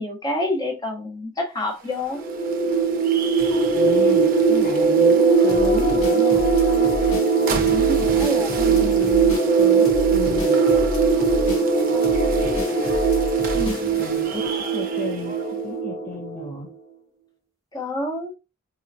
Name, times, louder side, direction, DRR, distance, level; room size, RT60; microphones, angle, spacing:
voice 1, 0.0-2.2 7.5-9.1 13.5-14.0 17.7-18.3, left 1 dB, 20° left, 1.0 m, -29 dB
sound 1, 1.6-15.7, right 4 dB, 45° right, 0.6 m, -36 dB
sound 2, 2.1-16.5, right 5 dB, 15° right, 1.0 m, -20 dB
voice 2, 3.7-6.5 8.3-10.6 14.0-15.4 15.6-16.7, left 3 dB, 40° left, 0.7 m, -34 dB
sound 3, 5.5-14.2, equal, 85° left, 1.1 m, -31 dB
4.3 x 2.8 x 2.5 m
head